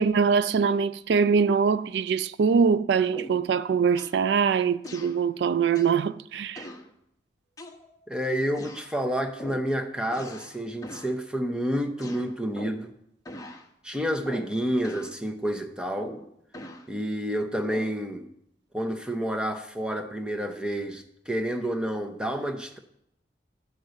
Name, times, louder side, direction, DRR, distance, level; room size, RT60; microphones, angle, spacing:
voice 1, 0.0-6.7, right 6 dB, 70° right, 0.3 m, -23 dB
sound 1, 3.1-3.5 4.0-4.2 4.8-5.2 5.7-6.0 6.5-6.9 7.6-8.1 8.5-8.9 9.4-9.7 10.1-10.6 10.8-11.2 12.0-12.9 13.2-13.7 14.2-14.6 14.8-15.2 16.0-16.9 17.7-18.0, left 1 dB, 20° left, 0.9 m, -42 dB
voice 2, 8.1-12.9 13.8-16.1 16.9-18.3 18.7-22.8, equal, 5° right, 0.8 m, -29 dB
12.0 x 5.5 x 7.9 m
head